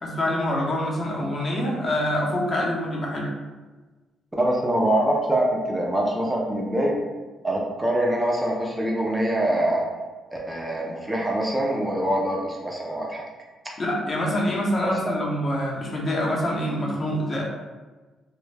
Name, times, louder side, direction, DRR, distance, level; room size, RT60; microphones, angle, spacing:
voice 1, 0.0-3.3 13.8-17.4, left 1 dB, 35° left, -3 dB, 0.7 m, -25 dB
voice 2, 4.4-6.9 7.4-9.9 10.3-13.2 14.8-15.1, right 1 dB, 10° right, -2 dB, 0.4 m, -24 dB
2.2 x 2.0 x 3.2 m, 1.3 s
cardioid pair, 90°, 0 cm